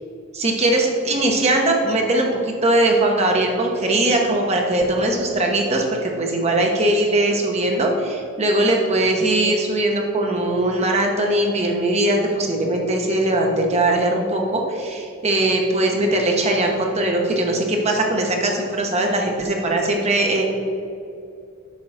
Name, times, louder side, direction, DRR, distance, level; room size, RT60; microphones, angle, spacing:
voice 1, 0.3-20.4, right 1 dB, 30° right, 1 dB, 0.8 m, -20 dB
8.4 x 3.7 x 6.2 m, 2.5 s
head